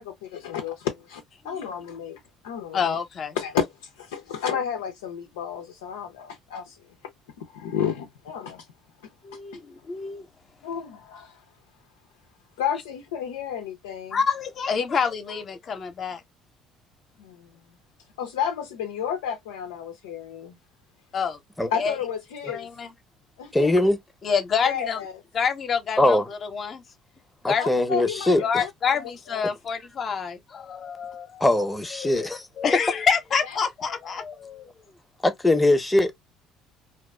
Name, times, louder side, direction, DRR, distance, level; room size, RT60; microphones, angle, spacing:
voice 1, 0.0-2.8 3.4-6.8 7.4-8.7 10.6-11.4 12.6-14.2 17.2-17.5 18.2-20.6 21.7-22.7 23.4-23.7 24.6-25.1 27.6-29.4, left 8 dB, 85° left, 0.4 m, -31 dB
voice 2, 2.7-3.4 9.2-10.3 14.1-16.2 21.1-21.4 21.7-22.0 22.5-22.9 24.2-25.0 25.3-26.8 27.4-27.8 28.4-31.4 31.9-32.3 32.6-35.0, left 6 dB, 50° left, 0.7 m, -27 dB
voice 3, 23.5-24.0 26.0-26.2 27.4-28.6 31.4-32.5 35.2-36.1, left 1 dB, 10° left, 0.7 m, -21 dB
2.3 x 2.3 x 2.2 m
hypercardioid pair, 65°, 0 cm